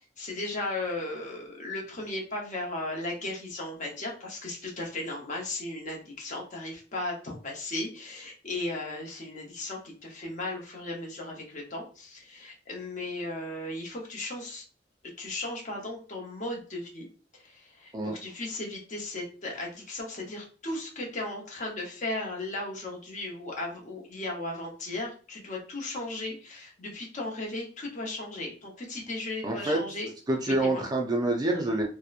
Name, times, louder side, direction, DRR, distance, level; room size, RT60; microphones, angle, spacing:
voice 1, 0.2-14.6 15.2-17.1 17.3-30.1 30.4-30.8, left 2 dB, 45° left, -1 dB, 0.8 m, -36 dB
voice 2, 29.4-29.8 30.3-31.9, right 2 dB, 25° right, 2 dB, 0.4 m, -27 dB
2.8 x 2.0 x 2.4 m, 0.38 s
head